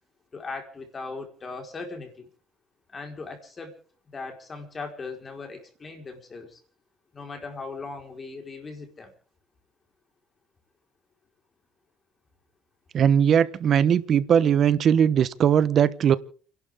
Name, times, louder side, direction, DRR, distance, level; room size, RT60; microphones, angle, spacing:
voice 1, 0.3-2.3 2.9-3.7 4.1-6.6 7.1-9.1, left 3 dB, 30° left, 4.8 m, -38 dB
voice 2, 12.9-16.2, right 8 dB, 50° right, 1.1 m, -20 dB
30.0 x 12.0 x 3.8 m
cardioid pair, 115°, 0 cm